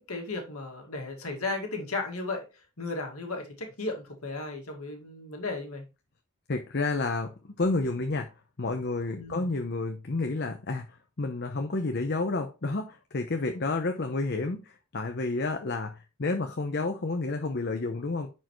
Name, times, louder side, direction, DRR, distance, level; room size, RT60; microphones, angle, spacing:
voice 1, 0.1-2.5 2.8-5.9 9.2-9.5, left 3 dB, 80° left, 2.1 m, -35 dB
voice 2, 6.5-8.3 8.6-10.9 11.2-18.3, left 3 dB, 50° left, 0.7 m, -30 dB
10.5 x 4.6 x 3.1 m
head